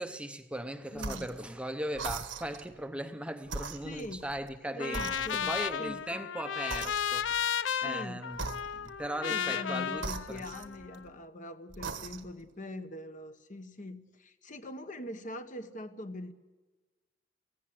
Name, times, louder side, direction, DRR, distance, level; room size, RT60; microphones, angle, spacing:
voice 1, 0.0-7.5 7.8-10.4, right 1 dB, 5° right, 0.8 m, -39 dB
voice 2, 0.9-1.3 3.8-4.2 4.7-5.5 5.8-6.2 7.8-8.2 9.3-16.3, left 1 dB, 45° left, 1.2 m, -42 dB
sound 1, 1.0-1.4 1.9-2.7 3.4-4.6 4.9-5.7 6.7-7.4 8.3-9.1 10.0-11.1 11.7-12.4, right 4 dB, 85° right, 1.4 m, -40 dB
Trumpet, 4.8-11.0, left 8 dB, 85° left, 0.6 m, -34 dB
17.5 x 16.0 x 9.7 m
head